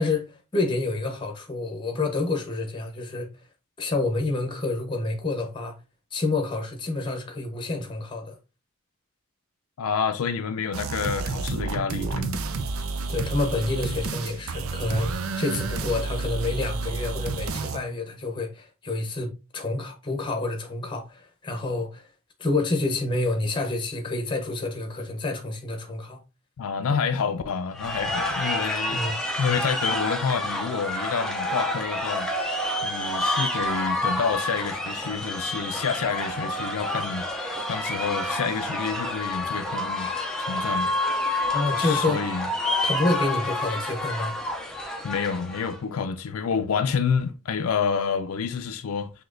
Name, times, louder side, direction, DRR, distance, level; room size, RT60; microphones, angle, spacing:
voice 1, 0.0-3.3 3.8-5.8 6.1-8.4 13.1-22.1 22.4-26.2 26.9-27.0 28.9-29.2 41.5-42.3 42.8-44.4, left 2 dB, 20° left, 0.8 m, -28 dB
voice 2, 9.8-12.4 26.6-29.0 29.4-32.3 32.8-40.1 40.4-40.9 41.8-42.5 45.0-49.1, left 6 dB, 75° left, 0.4 m, -28 dB
sound 1, 10.7-17.8, right 3 dB, 70° right, 0.5 m, -30 dB
sound 2, 27.7-45.8, left 1 dB, 5° left, 0.4 m, -28 dB
5.9 x 2.8 x 2.5 m
head